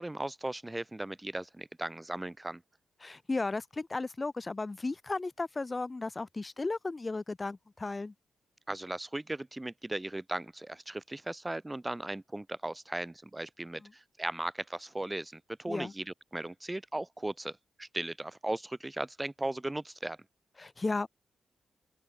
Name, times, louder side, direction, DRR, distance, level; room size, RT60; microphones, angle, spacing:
voice 1, 0.0-2.6 8.7-20.2, right 1 dB, 15° right, 2.1 m, -37 dB
voice 2, 3.0-8.1 13.8-13.9 15.7-15.9 20.6-21.1, left 3 dB, 30° left, 1.9 m, -35 dB
open air
cardioid pair, 80°, 0 cm